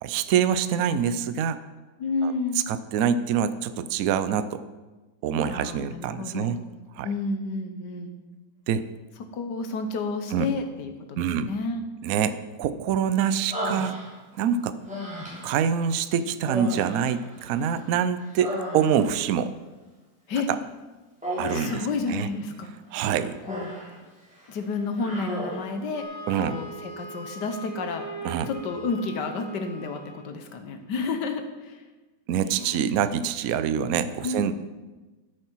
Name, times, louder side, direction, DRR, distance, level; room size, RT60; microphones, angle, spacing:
voice 1, 0.0-1.6 2.2-2.3 2.7-4.6 5.2-6.6 7.0-7.1 8.7-8.9 10.3-10.5 11.2-11.5 12.0-14.0 14.4-14.8 15.4-19.5 20.5-20.6 21.4-21.8 22.1-22.3 22.9-23.4 26.3-26.6 28.2-28.5 32.3-34.5, right 8 dB, 65° right, 12 dB, 0.9 m, -25 dB
voice 2, 2.0-2.6 5.4-6.6 7.0-8.1 9.3-11.9 20.3-20.5 21.5-22.8 23.5-23.7 24.5-26.0 26.3-28.0 28.5-31.8 32.5-32.9 34.2-34.5, left 3 dB, 70° left, 7 dB, 1.6 m, -31 dB
Human voice, 13.5-14.4 14.9-15.6 16.4-17.8 18.2-19.2 21.2-21.9 22.9-24.0 24.3-24.5 25.0-25.8, equal, 5° right, 3.2 m, -34 dB
Wind instrument woodwind instrument, 25.9-30.3, right 1 dB, 20° left, 1.6 m, -40 dB
13.0 x 7.6 x 4.6 m, 1.2 s
omnidirectional pair, 2.0 m